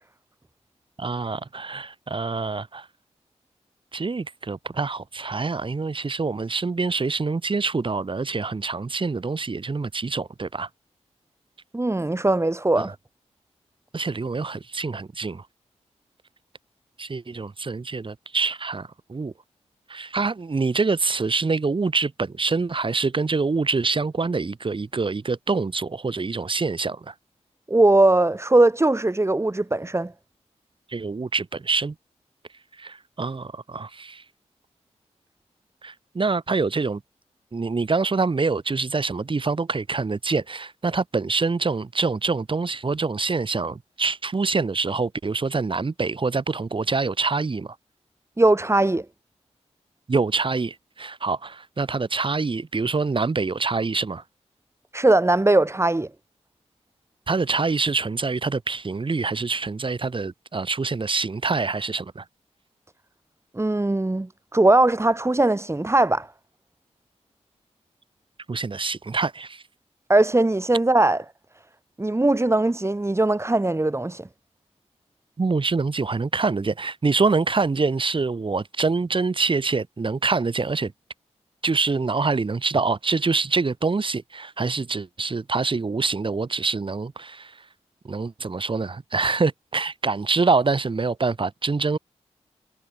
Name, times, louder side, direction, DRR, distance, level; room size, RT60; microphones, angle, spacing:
voice 1, 1.0-2.9 3.9-10.7 12.8-12.9 13.9-15.5 17.0-19.3 19.9-27.1 30.9-31.9 32.8-34.2 35.8-37.0 37.5-47.7 50.1-54.2 57.3-62.2 68.5-69.6 75.4-80.9 81.6-87.6 88.0-92.0, right 4 dB, 45° right, 4.7 m, -25 dB
voice 2, 11.7-12.9 27.7-30.1 48.4-49.0 54.9-56.1 63.5-66.3 70.1-71.2 72.0-74.3, right 2 dB, 20° right, 4.8 m, -20 dB
cardioid pair, 65°, 12 cm